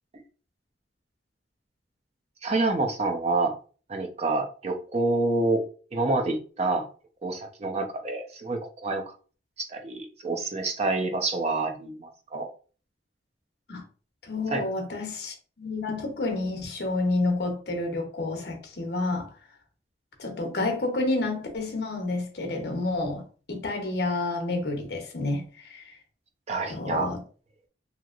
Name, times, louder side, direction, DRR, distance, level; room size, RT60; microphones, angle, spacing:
voice 1, 2.4-3.5 3.9-5.6 5.9-6.9 7.2-9.0 9.6-12.5 14.5-14.6 26.5-27.1, right 2 dB, 35° right, 0.6 m, -27 dB
voice 2, 14.2-19.3 20.2-23.2 23.5-26.0 26.7-27.2, left 2 dB, 60° left, 0.8 m, -29 dB
2.9 x 2.8 x 2.4 m
head